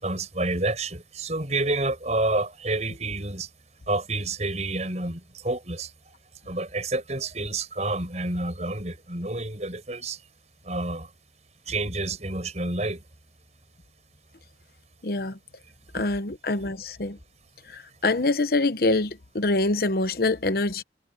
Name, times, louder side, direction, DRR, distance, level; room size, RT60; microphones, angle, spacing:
voice 1, 0.0-3.5 3.9-5.9 6.5-10.2 10.6-11.1 11.7-13.0 16.0-16.1, right 2 dB, 40° right, 5.8 m, -29 dB
voice 2, 15.0-15.4 15.9-17.2 17.7-20.8, left 2 dB, 55° left, 0.9 m, -25 dB
head